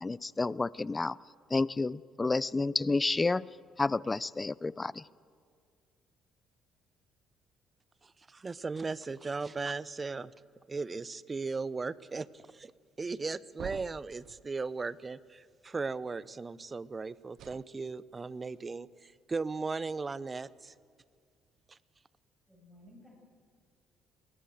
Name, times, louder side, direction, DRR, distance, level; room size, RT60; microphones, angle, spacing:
voice 1, 0.0-1.2 1.5-3.4 3.8-5.0, left 3 dB, 25° left, 22 dB, 0.5 m, -30 dB
voice 2, 8.0-10.3 10.7-12.7 13.0-20.7 21.7-21.8, right 4 dB, 30° right, 19 dB, 0.8 m, -37 dB
sound 1, 13.6-14.5 17.3-17.6, right 11 dB, 65° right, 0.5 m, -46 dB
voice 3, 22.5-23.2, left 1 dB, 10° right, -1 dB, 7.7 m, -56 dB
21.0 x 19.5 x 7.7 m, 2.1 s
hypercardioid pair, 55°, 0 cm